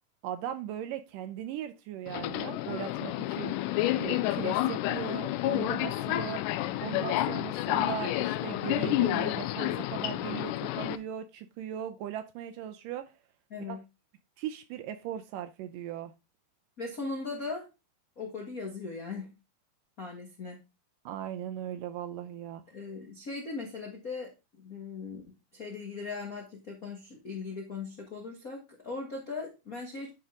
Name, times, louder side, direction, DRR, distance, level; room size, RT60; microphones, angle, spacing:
voice 1, 0.2-3.7 4.0-6.4 6.8-13.1 13.7-13.8 14.4-16.1 21.1-22.6, right 10 dB, 80° right, 2.0 m, -38 dB
Subway metro underground, 2.1-11.0, left 14 dB, 85° left, 1.8 m, -30 dB
voice 2, 16.8-17.7 18.2-19.3 20.0-20.6 22.7-24.3 24.6-30.1, left 4 dB, 70° left, 0.8 m, -39 dB
10.0 x 4.5 x 3.7 m
omnidirectional pair, 4.2 m